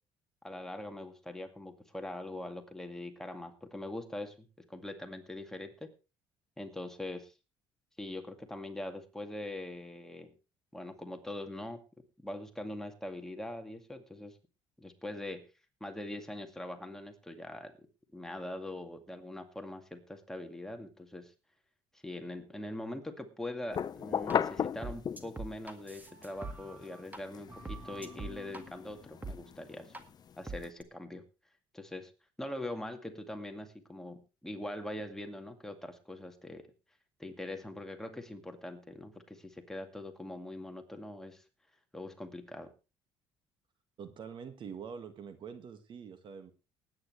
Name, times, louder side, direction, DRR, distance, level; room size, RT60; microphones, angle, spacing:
voice 1, 0.4-5.9 6.6-7.3 8.0-10.3 10.7-11.8 12.2-14.4 14.8-15.5 15.8-17.7 18.1-21.3 21.9-29.9 30.4-31.2 31.7-32.1 32.4-36.7 37.2-41.4 41.9-42.7, left 1 dB, 5° left, 4 dB, 2.2 m, -42 dB
sound 1, 23.7-25.6 26.0-30.7, left 8 dB, 40° left, 0.7 m, -37 dB
sound 2, 24.3-24.4 24.8-27.2 27.5-28.6 29.2-29.4 29.9-30.0 30.5-30.8, right 3 dB, 15° right, 1.8 m, -43 dB
voice 2, 44.0-46.5, right 6 dB, 50° right, 9 dB, 1.8 m, -45 dB
19.5 x 9.4 x 3.3 m, 0.30 s
cardioid pair, 95°, 10 cm